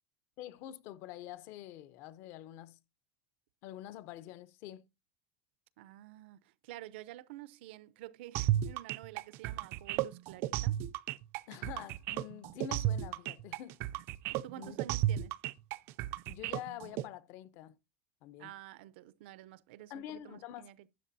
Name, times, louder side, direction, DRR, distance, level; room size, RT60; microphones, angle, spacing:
voice 1, 0.4-2.8 3.6-4.8 11.5-13.8 14.6-14.8 16.3-17.8 18.2-18.5 19.9-20.7, left 12 dB, 45° left, 0.7 m, -46 dB
voice 2, 5.8-10.8 14.3-15.4 18.4-20.9, right 15 dB, 75° right, 0.7 m, -50 dB
sound 1, 8.3-17.0, right 13 dB, 40° right, 0.4 m, -33 dB
12.5 x 8.4 x 2.7 m
cardioid pair, 180°, 6 cm